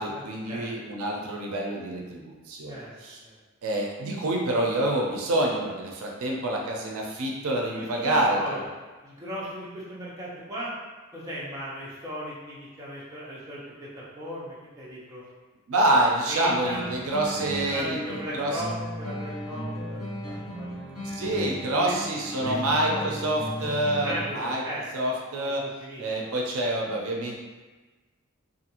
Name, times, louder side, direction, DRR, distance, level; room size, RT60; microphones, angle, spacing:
voice 1, 0.0-3.2 3.6-8.6 15.7-18.0 18.3-18.6 21.1-24.6 24.9-25.6 26.0-27.3, right 1 dB, 80° right, -1 dB, 0.5 m, -27 dB
voice 2, 7.8-8.6 9.0-10.7 11.1-15.2 16.3-16.8 17.4-18.7 19.0-20.7 21.2-22.0 22.3-22.6 22.8-23.2 23.9-24.8 25.6-26.0, equal, 15° right, -8 dB, 0.6 m, -37 dB
sound 1, 16.6-24.6, equal, 75° left, 1.2 m, -36 dB
2.6 x 2.4 x 2.8 m, 1.3 s
head